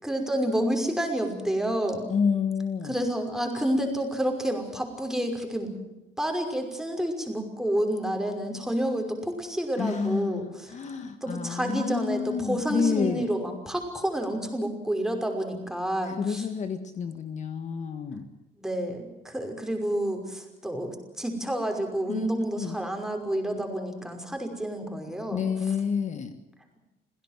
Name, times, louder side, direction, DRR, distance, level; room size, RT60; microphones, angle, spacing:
voice 1, 0.0-2.1 2.8-5.7 6.2-10.8 11.2-16.5 18.6-25.8, right 1 dB, 5° right, 3 dB, 5.6 m, -29 dB
voice 2, 2.1-2.9 9.8-13.3 16.2-18.3 22.1-22.3 22.6-22.7 25.3-26.3, left 6 dB, 45° left, 8 dB, 1.7 m, -29 dB
27.0 x 17.0 x 7.6 m, 0.96 s
cardioid pair, 110°, 17 cm